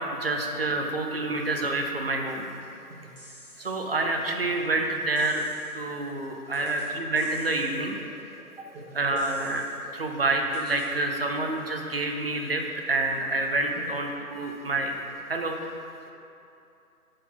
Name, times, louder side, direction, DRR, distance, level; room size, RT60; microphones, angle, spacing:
voice 1, 0.0-2.5 3.6-5.5 5.7-8.0 9.0-15.0 15.3-15.6, right 2 dB, 40° right, 2 dB, 0.6 m, -28 dB
sound 1, 3.2-3.8 5.2-5.8 6.5-6.9 7.2-7.8 9.2-9.8 10.5-10.9, left 1 dB, 30° left, 1.6 m, -50 dB
voice 2, 3.6-4.0 6.6-6.8 8.0-8.1 8.4-9.0 13.7-13.9 15.4-15.5 16.0-16.1, right 2 dB, 60° right, -6 dB, 1.8 m, -48 dB
9.6 x 4.8 x 3.8 m, 2.7 s
hypercardioid pair, 170°, 46 cm